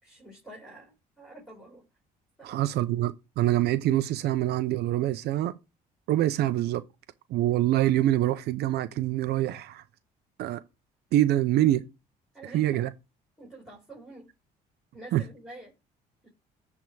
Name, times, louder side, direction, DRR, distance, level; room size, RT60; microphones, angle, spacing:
voice 1, 0.0-1.8 2.4-2.6 12.3-12.8 13.4-14.3 14.9-15.7 16.2-16.3, right 2 dB, ahead, 4.6 m, -47 dB
voice 2, 2.4-5.5 6.1-6.8 7.3-9.8 10.4-10.6 11.1-11.9 12.5-12.9 15.1-15.2, right 14 dB, 75° right, 0.7 m, -25 dB
10.5 x 3.7 x 4.6 m
cardioid pair, 110°, 17 cm